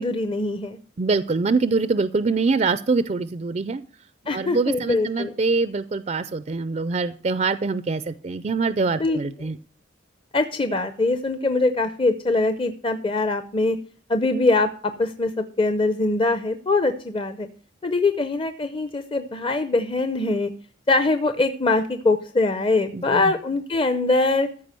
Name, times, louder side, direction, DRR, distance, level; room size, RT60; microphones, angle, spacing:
voice 1, 0.0-0.8 4.3-5.3 9.0-9.2 10.3-13.8 14.1-17.5 17.8-20.5 20.9-24.5, left 3 dB, 25° left, 9 dB, 0.6 m, -23 dB
voice 2, 1.0-3.8 4.3-9.6 22.9-23.2, right 4 dB, 35° right, 14 dB, 0.4 m, -24 dB
14.0 x 4.9 x 7.6 m, 0.43 s
head